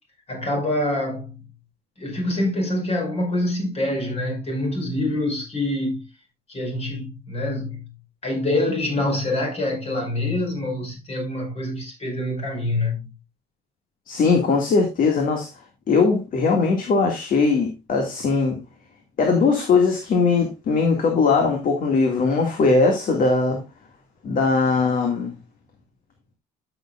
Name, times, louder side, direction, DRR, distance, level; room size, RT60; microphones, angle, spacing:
voice 1, 0.3-1.4 2.0-6.1 6.5-7.9 8.2-13.1, left 1 dB, 35° left, 5.2 m, -25 dB
voice 2, 14.1-15.5 15.9-18.6 19.2-23.7 24.2-25.3, left 4 dB, 55° left, 2.1 m, -20 dB
13.0 x 6.9 x 2.4 m
cardioid pair, 110°, 17 cm